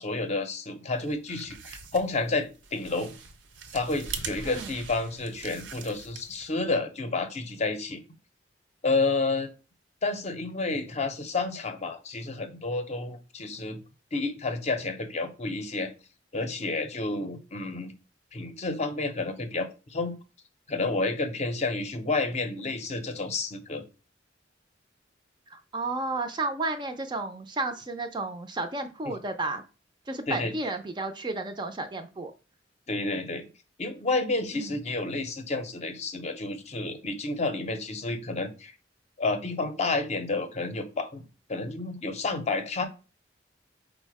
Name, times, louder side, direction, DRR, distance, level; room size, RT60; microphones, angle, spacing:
voice 1, 0.0-3.1 3.7-8.0 8.8-9.5 10.0-13.8 14.1-15.9 16.3-17.9 18.3-20.2 20.7-23.8 29.1-29.2 30.3-30.5 32.9-33.5 33.8-38.7 39.2-41.2 41.5-42.9, left 3 dB, 35° left, 7 dB, 0.6 m, -30 dB
sound 1, 1.0-6.5, right 5 dB, 80° right, 0.7 m, -42 dB
voice 2, 25.5-29.6 30.1-32.3 34.5-34.8, right 2 dB, 25° right, 7 dB, 0.4 m, -32 dB
4.8 x 2.1 x 4.6 m, 0.31 s
head